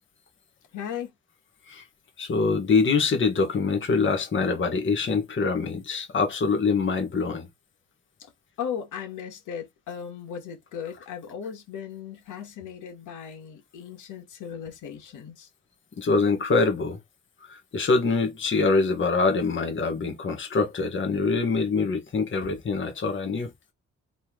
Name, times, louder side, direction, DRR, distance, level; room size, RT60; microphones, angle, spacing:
voice 1, 0.7-1.1 8.2-8.3 8.6-15.5, left 8 dB, 80° left, 2.1 m, -37 dB
voice 2, 2.2-7.5 16.0-17.0 17.5-23.5, left 4 dB, 40° left, 1.6 m, -24 dB
4.1 x 3.3 x 3.8 m
cardioid pair, 90°, 30 cm